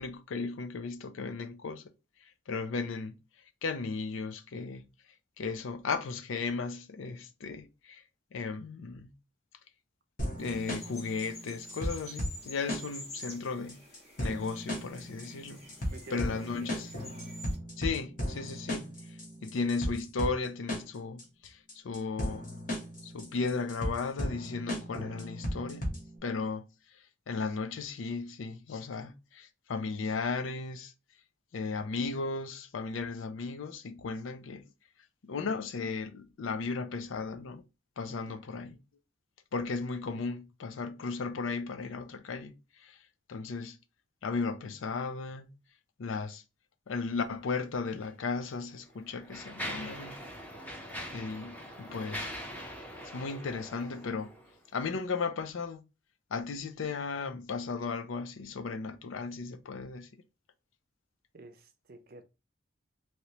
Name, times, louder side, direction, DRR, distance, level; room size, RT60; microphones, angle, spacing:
voice 1, 0.0-1.8 2.2-3.2 3.6-4.9 5.4-8.0 8.3-9.1 10.4-13.8 14.2-15.6 16.1-16.9 17.8-22.5 23.0-25.9 26.2-26.7 27.3-30.9 31.5-34.7 35.2-37.6 38.0-38.8 39.5-43.0 43.3-43.8 44.2-45.5 46.0-46.4 46.9-50.2 51.1-52.3 53.1-54.3 54.7-55.8 56.3-60.1, left 4 dB, 85° left, 0.5 m, -35 dB
sound 1, 10.2-26.2, equal, 40° left, 1.0 m, -36 dB
sound 2, 10.4-17.6, left 1 dB, 55° left, 1.5 m, -49 dB
voice 2, 15.9-16.2 38.3-38.4 61.3-62.2, right 2 dB, 50° right, 0.5 m, -49 dB
Mechanisms, 47.9-48.1 48.8-54.6, equal, 10° left, 0.6 m, -42 dB
3.2 x 2.9 x 2.8 m
head